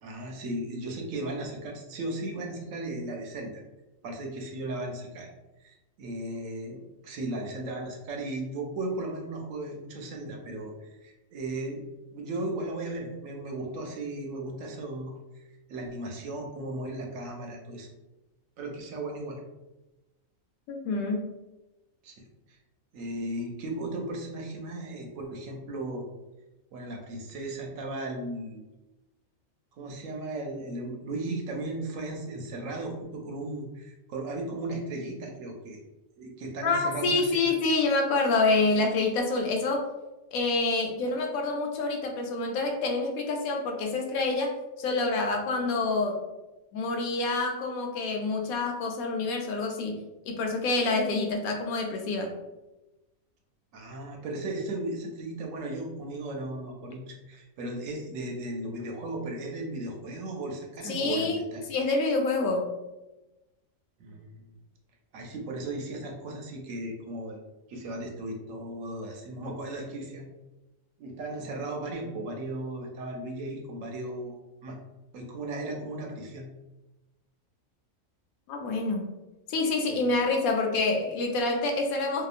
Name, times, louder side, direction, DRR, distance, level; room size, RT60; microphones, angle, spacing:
voice 1, 0.0-3.6 4.0-5.3 5.6-11.8 12.1-17.9 18.6-19.4 22.0-22.1 22.5-22.6 22.9-26.1 26.7-28.6 29.7-35.8 36.2-37.5 53.7-61.6 64.0-64.4 65.1-67.4 67.7-70.3 71.0-74.3 74.6-74.8 75.1-76.5 79.9-80.3, right 2 dB, 75° right, 1 dB, 0.9 m, -36 dB
voice 2, 20.7-21.3 36.6-39.9 40.3-44.5 44.8-46.2 46.7-52.3 60.8-61.4 61.7-62.7 78.5-79.1 79.5-82.3, left 3 dB, 90° left, 3 dB, 1.0 m, -27 dB
2.8 x 2.2 x 2.4 m, 1.0 s
omnidirectional pair, 1.4 m